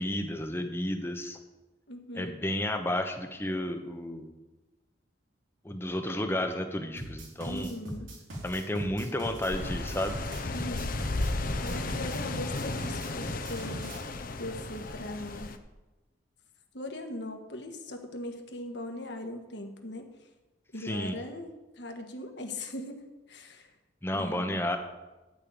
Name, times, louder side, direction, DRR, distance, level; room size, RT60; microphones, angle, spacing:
voice 1, 0.0-1.4 2.1-4.3 5.6-7.7 8.4-10.2 20.8-21.1 24.0-24.8, left 1 dB, 10° left, 5 dB, 1.0 m, -32 dB
voice 2, 1.9-2.3 7.4-8.1 10.5-11.0 11.2-13.9 14.4-15.6 16.7-20.1 20.7-23.7 24.1-24.6, left 1 dB, 65° left, 4 dB, 1.6 m, -40 dB
sound 1, 7.0-14.0, right 1 dB, 85° right, 3.8 m, -40 dB
sound 2, 9.5-15.6, left 2 dB, 45° left, 0.8 m, -34 dB
12.0 x 5.6 x 8.8 m, 1.1 s
head